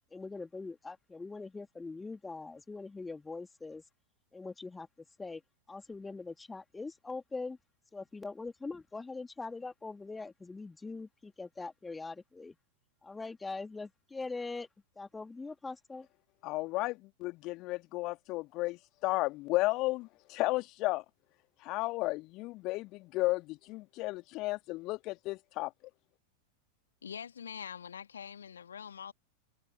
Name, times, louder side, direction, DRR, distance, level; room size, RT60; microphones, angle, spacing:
voice 1, 0.1-3.8 4.3-5.4 5.7-7.6 7.9-12.6 13.0-14.7 15.0-16.1, left 3 dB, 10° left, 2.6 m, -42 dB
voice 2, 16.4-21.0 21.6-25.7, left 20 dB, 40° left, 2.3 m, -33 dB
voice 3, 27.0-29.1, left 7 dB, 70° left, 2.2 m, -44 dB
figure-of-eight pair, 90°, 0 cm